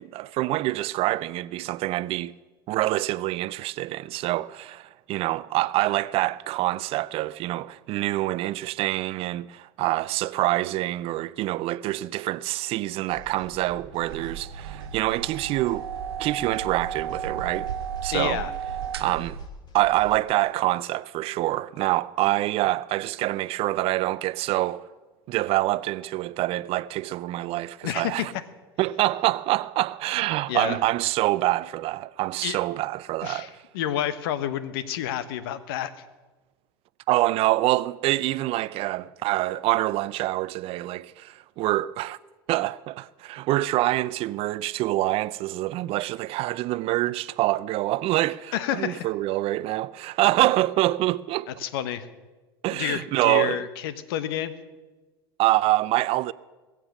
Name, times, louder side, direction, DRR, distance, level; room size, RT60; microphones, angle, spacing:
voice 1, 0.0-2.3 2.7-15.9 16.2-17.7 18.0-18.4 19.0-19.4 19.7-24.8 25.3-28.3 28.8-33.5 37.1-42.2 42.5-51.5 52.6-53.6 55.4-56.3, right 17 dB, 50° right, 0.5 m, -26 dB
sound 1, 13.1-20.2, left 4 dB, 35° left, 2.7 m, -48 dB
sound 2, 14.0-19.5, right 9 dB, 85° right, 0.7 m, -34 dB
voice 2, 18.1-18.5 27.8-28.3 30.5-30.8 32.4-32.6 33.2-36.0 48.5-49.1 51.5-52.1 52.7-54.5, left 11 dB, 70° left, 1.1 m, -29 dB
21.5 x 7.5 x 6.5 m
hypercardioid pair, 80°, 13 cm